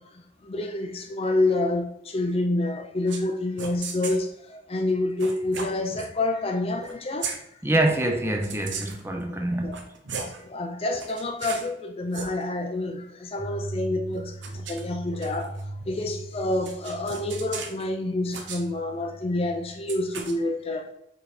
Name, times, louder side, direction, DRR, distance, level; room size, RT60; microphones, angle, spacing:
voice 1, 0.0-7.6 9.6-9.8 10.2-20.9, left 2 dB, 30° left, 0.5 m, -28 dB
sound 1, 3.1-3.3 3.6-4.2 5.2-6.1 6.8-6.9 7.2-7.4 8.4-9.1 9.6-10.4 10.9-11.7 12.0-12.3 14.1-15.6 16.6-17.8 18.3-18.6 19.9-20.3, right 5 dB, 80° right, 0.9 m, -36 dB
voice 2, 7.6-9.8, right 1 dB, 15° right, 0.6 m, -25 dB
sound 2, 13.4-20.2, right 1 dB, ahead, 1.3 m, -40 dB
5.2 x 4.6 x 4.3 m
head